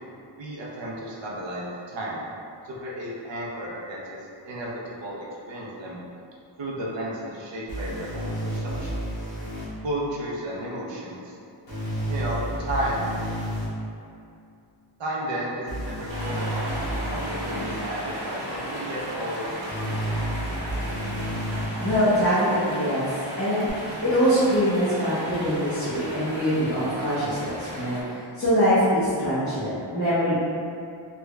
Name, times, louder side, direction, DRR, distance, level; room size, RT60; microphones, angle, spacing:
voice 1, 0.4-2.2 2.6-4.2 4.4-6.0 6.6-9.0 9.8-11.3 12.1-13.1 15.0-20.1, right 1 dB, 75° right, -5 dB, 0.8 m, -33 dB
sound 1, 7.7-9.6 11.7-13.7 15.7-17.6 19.7-21.7 23.7-23.8, right 1 dB, 55° left, 1.1 m, -31 dB
sound 2, 16.1-28.0, equal, 90° right, 1.2 m, -35 dB
voice 2, 21.8-30.4, equal, 30° left, -12 dB, 0.7 m, -23 dB
3.4 x 2.3 x 3.1 m, 2.5 s
wide cardioid pair, 180°, 45 cm